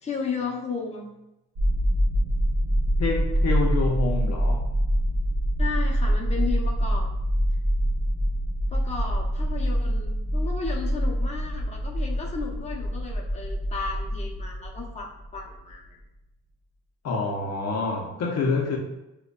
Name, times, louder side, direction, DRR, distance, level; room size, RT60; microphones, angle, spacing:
voice 1, 0.0-1.1 5.6-7.1 8.7-15.9, left 5 dB, 20° left, 0.7 m, -34 dB
sound 1, 1.6-15.7, equal, 70° right, 1.1 m, -25 dB
voice 2, 3.0-4.7 17.0-18.8, left 3 dB, 60° left, 0.6 m, -27 dB
5.0 x 2.2 x 2.2 m
cardioid pair, 90°, 30 cm